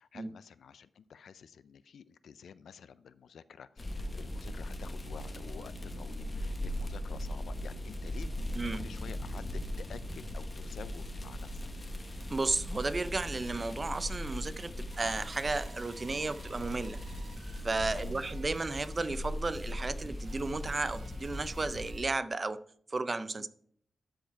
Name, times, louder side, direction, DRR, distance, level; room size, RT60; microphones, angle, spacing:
voice 1, 0.0-11.7 17.9-18.2 23.3-23.5, left 7 dB, 85° left, 0.4 m, -50 dB
sound 1, 3.8-21.9, left 1 dB, 25° left, 1.0 m, -39 dB
voice 2, 8.6-8.9 12.3-17.0 17.6-22.6 22.9-23.5, right 3 dB, 30° right, 0.4 m, -33 dB
sound 2, 14.9-22.0, right 5 dB, 75° right, 1.3 m, -57 dB
13.0 x 4.6 x 4.6 m
wide cardioid pair, 145°, 0 cm